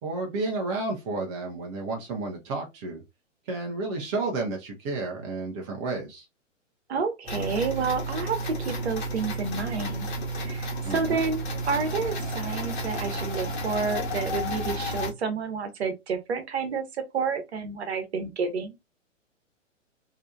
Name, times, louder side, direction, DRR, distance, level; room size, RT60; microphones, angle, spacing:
voice 1, 0.0-3.0 3.5-6.2 10.8-11.2, right 3 dB, 15° right, 0.4 m, -31 dB
voice 2, 6.9-10.1 10.4-16.8 17.1-18.8, right 5 dB, 55° right, 1.0 m, -30 dB
sound 1, 7.3-15.1, right 1 dB, 40° left, 1.4 m, -32 dB
3.2 x 2.7 x 2.3 m
figure-of-eight pair, 115°, 38 cm